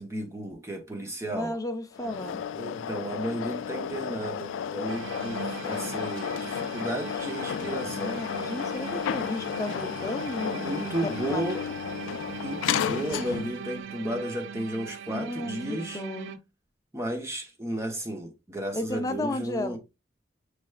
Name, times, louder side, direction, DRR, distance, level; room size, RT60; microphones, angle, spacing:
voice 1, 0.0-1.5 2.6-8.2 10.6-11.6 12.4-16.0 16.9-19.8, right 1 dB, 15° right, 0.8 m, -33 dB
voice 2, 1.3-2.4 8.0-11.8 15.1-16.4 18.7-19.8, left 1 dB, 20° left, 0.6 m, -34 dB
sound 1, 1.9-13.7, left 8 dB, 80° left, 0.3 m, -33 dB
sound 2, 4.9-16.4, right 7 dB, 80° right, 0.4 m, -40 dB
5.9 x 3.3 x 2.3 m
head